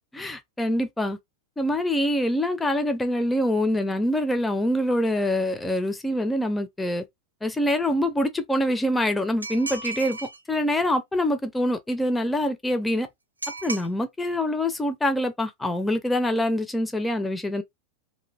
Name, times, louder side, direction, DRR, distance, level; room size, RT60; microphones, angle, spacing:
voice 1, 0.1-1.2 1.6-7.0 7.4-10.2 10.5-13.1 13.6-17.6, left 1 dB, 10° left, 0.4 m, -25 dB
sound 1, 9.4-10.4 13.4-13.9, right 3 dB, 80° right, 0.4 m, -34 dB
2.4 x 2.2 x 3.0 m
figure-of-eight pair, 90°, 0 cm